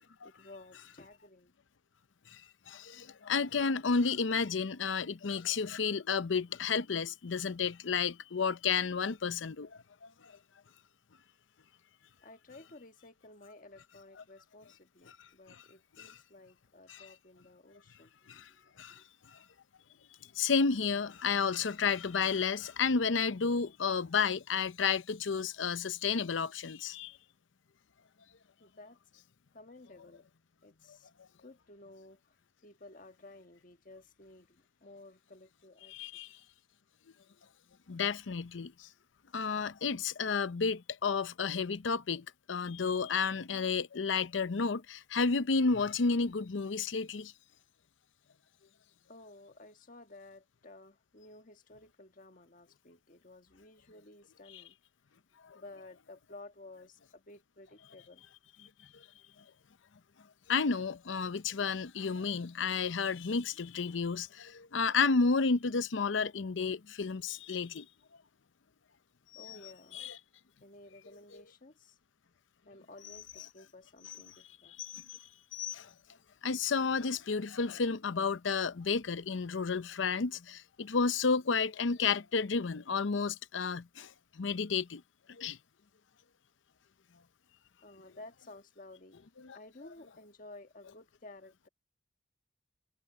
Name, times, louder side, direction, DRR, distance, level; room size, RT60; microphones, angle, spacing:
voice 1, 0.2-1.5 12.2-19.1 28.6-29.0 29.5-36.2 49.1-54.8 55.5-58.2 69.3-70.0 70.6-72.0 72.6-74.8 87.8-89.2 89.5-91.7, left 2 dB, 45° left, 1.5 m, -54 dB
voice 2, 2.7-10.3 16.0-16.1 16.9-17.0 18.3-18.5 18.8-19.0 19.3-19.4 20.3-27.2 35.9-36.4 37.9-38.9 39.3-47.3 55.4-55.6 58.9-59.1 60.5-67.9 69.3-69.6 69.9-70.2 74.0-74.2 74.8-75.9 76.4-85.0 85.3-85.6 89.4-89.6, left 5 dB, 80° left, 0.7 m, -32 dB
head